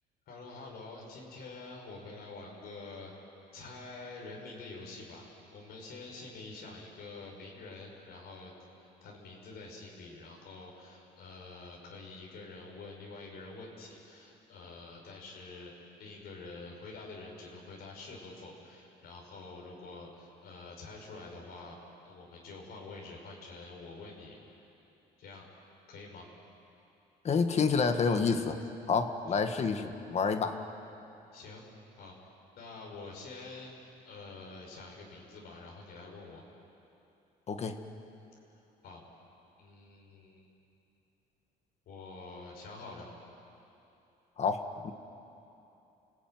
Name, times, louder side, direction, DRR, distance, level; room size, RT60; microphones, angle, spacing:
voice 1, 0.3-3.1 3.5-8.5 8.8-15.7 16.0-21.8 22.0-24.7 25.2-25.5 25.9-26.3 29.3-29.4 31.3-31.6 32.0-32.1 32.6-36.4 38.8-39.0 39.6-40.5 41.9-43.1, left 3 dB, 70° left, -1 dB, 6.2 m, -47 dB
voice 2, 27.2-28.6 28.9-30.6 37.5-37.8 44.4-44.9, left 5 dB, 40° left, 7 dB, 1.8 m, -29 dB
29.5 x 17.5 x 9.4 m, 2.8 s
cardioid pair, 110°, 17 cm